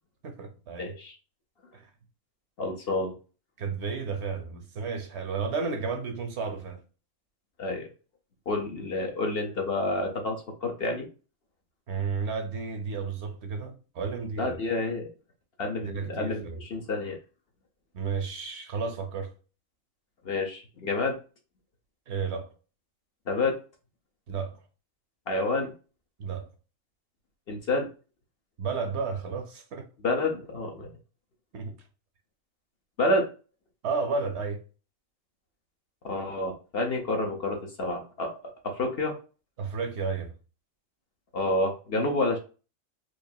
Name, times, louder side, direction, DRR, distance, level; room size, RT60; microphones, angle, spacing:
voice 1, 0.2-1.0 1.7-1.9 3.6-6.8 11.9-14.6 15.8-16.6 17.9-19.3 22.1-22.5 24.3-24.6 26.2-26.5 28.6-29.9 31.5-31.7 33.8-34.6 39.6-40.3, right 5 dB, 60° right, 0.9 m, -32 dB
voice 2, 0.8-1.2 2.6-3.1 7.6-7.9 8.5-11.1 14.4-15.1 15.6-17.2 20.2-21.2 23.3-23.5 25.3-25.7 27.5-27.9 30.0-30.9 33.0-33.2 36.0-38.3 38.6-39.1 41.3-42.4, left 2 dB, 55° left, 0.9 m, -29 dB
4.6 x 2.5 x 2.7 m
omnidirectional pair, 1.4 m